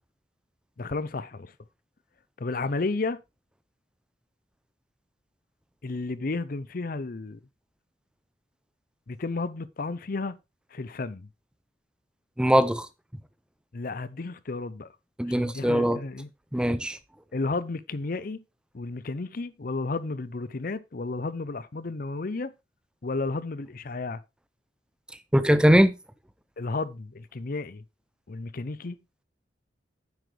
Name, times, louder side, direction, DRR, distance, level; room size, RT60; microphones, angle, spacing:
voice 1, 0.8-1.5 2.4-3.2 5.8-7.4 9.1-10.4 10.7-11.3 13.7-14.9 15.4-16.3 17.3-18.4 18.7-22.5 23.0-24.2 26.6-27.8 28.3-29.0, left 3 dB, 50° left, 0.6 m, -32 dB
voice 2, 12.4-12.9 15.2-16.0 16.5-17.0 25.3-25.9, equal, 5° right, 0.5 m, -21 dB
9.8 x 7.8 x 3.3 m
head